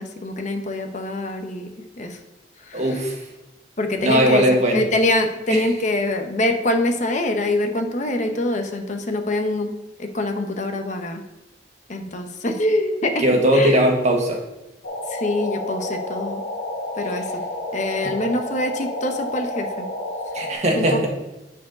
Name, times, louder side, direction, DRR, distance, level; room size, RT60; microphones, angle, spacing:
voice 1, 0.0-1.7 2.0-2.2 2.7-2.8 3.8-4.4 4.7-9.7 10.0-11.2 11.9-13.2 13.5-13.8 15.1-16.4 17.0-17.4 17.7-19.8 20.8-21.0, left 1 dB, 45° left, 5 dB, 0.8 m, -24 dB
voice 2, 2.7-3.3 4.0-4.9 5.5-5.7 13.2-14.4 17.1-17.2 17.9-18.1 20.3-21.1, right 1 dB, 40° right, 0 dB, 1.6 m, -19 dB
sound 1, 14.8-20.5, left 1 dB, 80° left, 2.0 m, -30 dB
9.1 x 4.7 x 5.2 m, 0.99 s
head